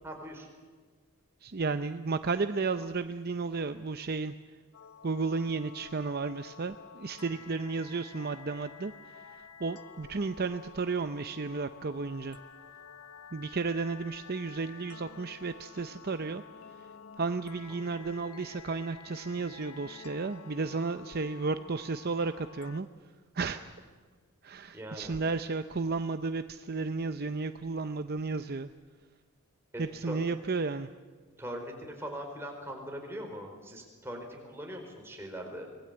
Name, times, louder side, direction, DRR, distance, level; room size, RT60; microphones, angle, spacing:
voice 1, 0.0-0.5 17.7-17.8 23.4-23.5 24.7-25.1 29.7-30.2 31.4-35.7, equal, 10° right, 1 dB, 4.7 m, -41 dB
voice 2, 1.4-4.3 5.0-8.9 9.3-12.4 13.3-16.4 17.2-22.9 23.3-23.6 24.4-28.7 29.8-30.9, right 4 dB, 45° right, 10 dB, 0.6 m, -33 dB
sound 1, 4.7-22.8, left 6 dB, 85° left, 1.2 m, -50 dB
25.5 x 20.0 x 8.8 m, 1.5 s
head